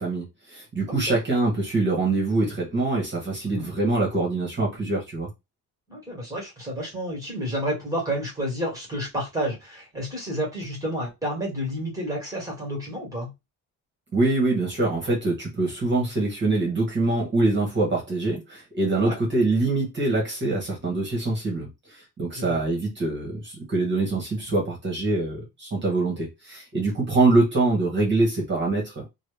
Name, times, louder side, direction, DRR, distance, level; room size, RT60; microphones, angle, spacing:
voice 1, 0.0-5.3 14.1-29.1, right 2 dB, 25° right, 1.3 m, -24 dB
voice 2, 5.9-13.3 19.0-19.2 22.3-22.6, equal, 10° right, 1.7 m, -30 dB
3.1 x 2.3 x 3.2 m
cardioid pair, 165°, 40 cm